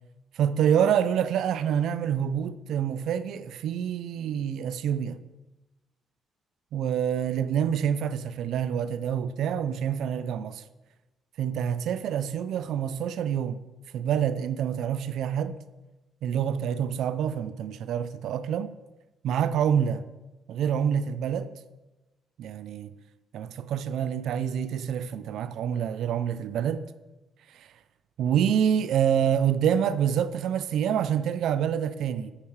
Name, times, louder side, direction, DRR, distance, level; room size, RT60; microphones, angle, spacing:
voice 1, 0.3-5.2 6.7-10.6 11.4-13.6 13.9-15.5 16.2-18.8 19.2-20.0 20.5-21.5 22.4-22.9 23.3-26.9 27.5-27.7 28.2-32.3, right 8 dB, 75° right, 0.4 m, -27 dB
8.7 x 4.7 x 4.6 m
cardioid pair, 90°, 0 cm